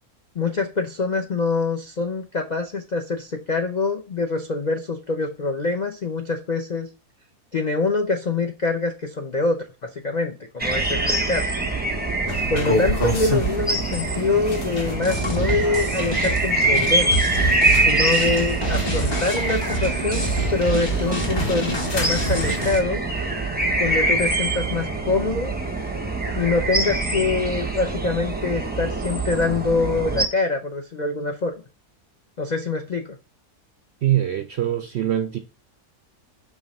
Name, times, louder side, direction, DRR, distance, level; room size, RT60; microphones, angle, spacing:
voice 1, 0.3-6.9 7.5-11.5 12.5-17.2 17.8-23.0 23.8-25.6 26.3-31.5 32.4-33.2, left 3 dB, 75° left, 0.4 m, -25 dB
sound 1, 10.6-30.3, right 2 dB, 15° right, 0.4 m, -24 dB
sound 2, 12.3-22.7, left 1 dB, 40° left, 1.3 m, -31 dB
sound 3, 15.0-22.8, right 2 dB, 25° left, 0.7 m, -27 dB
voice 2, 34.0-35.4, right 12 dB, 75° right, 0.6 m, -23 dB
5.4 x 3.6 x 5.2 m
omnidirectional pair, 1.7 m